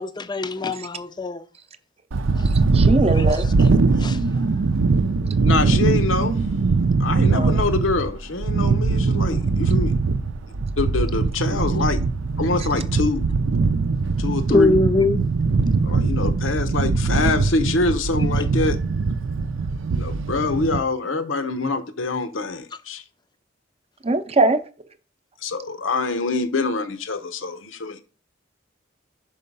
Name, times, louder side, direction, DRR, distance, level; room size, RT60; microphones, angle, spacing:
voice 1, 0.0-1.4 3.2-3.4 4.0-4.2 9.3-9.4 11.5-11.6 14.5-15.2, left 3 dB, 20° left, 0.5 m, -22 dB
sound 1, 2.1-20.8, right 4 dB, 70° right, 0.5 m, -21 dB
voice 2, 2.5-3.5 7.3-7.6 24.0-24.6, right 2 dB, 30° right, 0.7 m, -21 dB
voice 3, 5.4-6.4 7.0-9.9 10.8-12.0 12.4-13.2 14.2-14.8 15.8-18.8 19.9-23.0 25.4-28.0, left 3 dB, 75° left, 0.9 m, -25 dB
5.5 x 5.5 x 5.3 m
head